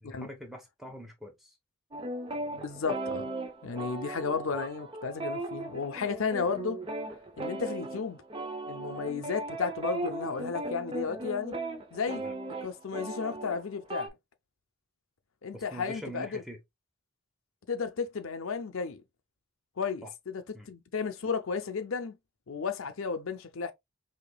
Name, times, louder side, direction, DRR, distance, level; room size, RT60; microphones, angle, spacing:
voice 1, 0.0-1.5 12.2-12.3 15.5-16.6 20.0-20.1 20.5-20.7, right 1 dB, ahead, 0.9 m, -44 dB
sound 1, 1.9-14.1, right 2 dB, 25° right, 0.5 m, -37 dB
voice 2, 2.5-3.3 3.6-6.8 7.4-8.2 8.7-11.5 11.9-12.2 12.6-14.1 15.4-16.4 17.7-19.0 19.8-22.2 22.5-23.7, left 5 dB, 80° left, 0.6 m, -33 dB
4.9 x 2.8 x 2.2 m
head